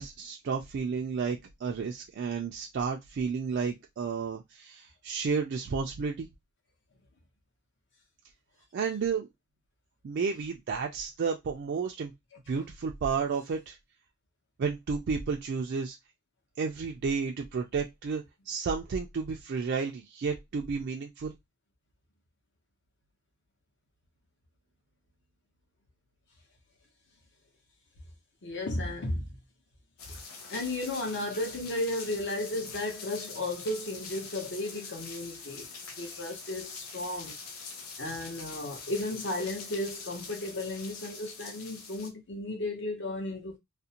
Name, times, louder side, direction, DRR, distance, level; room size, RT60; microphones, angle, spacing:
voice 1, 0.0-6.3 8.7-9.3 10.0-12.1 12.5-13.8 14.6-16.0 16.6-21.3, right 5 dB, 50° right, 0.3 m, -32 dB
voice 2, 28.4-29.3 30.1-30.2 30.5-37.4 38.0-43.6, left 1 dB, 55° left, 0.8 m, -34 dB
sound 1, 30.0-42.1, left 4 dB, 90° left, 0.6 m, -44 dB
2.5 x 2.0 x 2.8 m
head